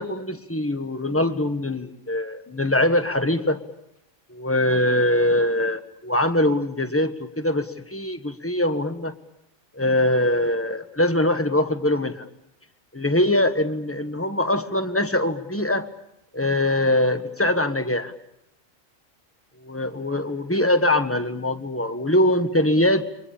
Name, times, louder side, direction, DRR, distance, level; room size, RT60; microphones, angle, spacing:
voice 1, 0.0-3.6 4.3-9.1 9.7-12.3 12.9-15.9 16.3-18.1 19.6-23.1, left 1 dB, 10° left, 7 dB, 1.3 m, -22 dB
29.5 x 24.0 x 7.2 m, 0.82 s
omnidirectional pair, 1.3 m